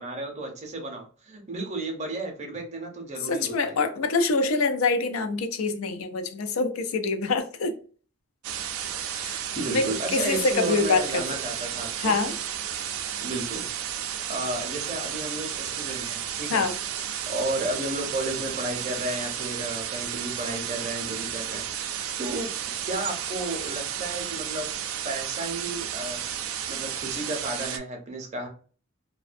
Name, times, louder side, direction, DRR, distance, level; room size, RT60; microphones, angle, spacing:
voice 1, 0.0-3.8 9.6-12.1 13.2-13.7 14.3-21.8 22.2-22.5 22.9-24.7 25.0-26.2 26.7-28.5, right 2 dB, 35° right, 0.6 m, -33 dB
voice 2, 3.2-7.7 9.2-9.4 9.7-11.2 12.0-12.4 16.5-16.8, left 3 dB, 80° left, 0.4 m, -25 dB
sound 1, 8.4-27.8, right 9 dB, 85° right, 0.3 m, -33 dB
2.5 x 2.1 x 2.5 m
head